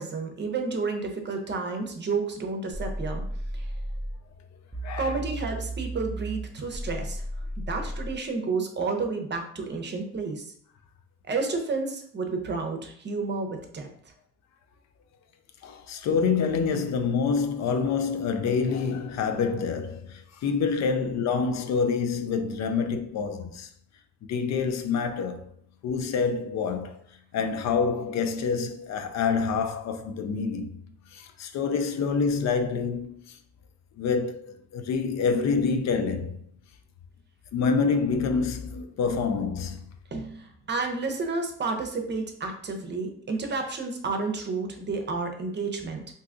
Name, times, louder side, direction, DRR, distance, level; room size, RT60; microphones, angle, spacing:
voice 1, 0.0-3.2 3.5-3.7 5.0-7.2 7.6-10.5 11.2-13.9 40.1-46.0, right 4 dB, 35° right, 0.7 m, -31 dB
sound 1, 2.7-4.2 4.7-8.2, right 1 dB, 5° right, 0.3 m, -34 dB
voice 2, 4.8-5.2 15.6-23.7 24.2-25.4 25.8-27.0 27.3-33.4 34.0-36.4 37.5-39.8, left 5 dB, 65° left, 0.4 m, -27 dB
2.7 x 2.3 x 3.6 m
cardioid pair, 90°, 30 cm